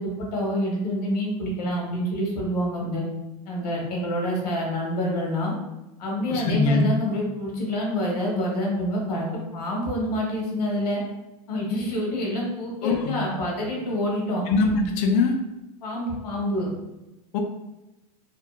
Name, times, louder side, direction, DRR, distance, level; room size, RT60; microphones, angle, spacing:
voice 1, 0.0-3.0 3.5-5.5 6.0-11.0 11.5-14.4 15.8-16.7, equal, 85° left, -2 dB, 1.0 m, -27 dB
voice 2, 6.3-6.9 12.8-13.2 14.5-15.3 17.3-17.4, left 3 dB, 55° left, 3 dB, 0.5 m, -22 dB
2.8 x 2.5 x 2.2 m, 0.98 s
hypercardioid pair, 110°, 20 cm